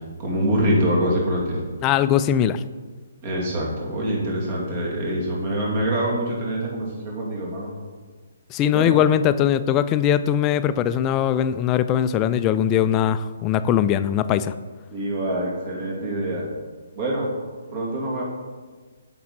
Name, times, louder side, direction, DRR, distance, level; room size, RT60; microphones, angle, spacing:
voice 1, 0.2-1.6 3.2-7.7 8.7-9.0 14.9-16.5 17.0-17.3 17.7-18.2, right 1 dB, 40° right, -3 dB, 2.3 m, -25 dB
voice 2, 1.8-2.6 8.5-14.5, left 10 dB, 25° left, 13 dB, 0.3 m, -20 dB
8.6 x 6.1 x 4.2 m, 1.4 s
hypercardioid pair, 145°, 0 cm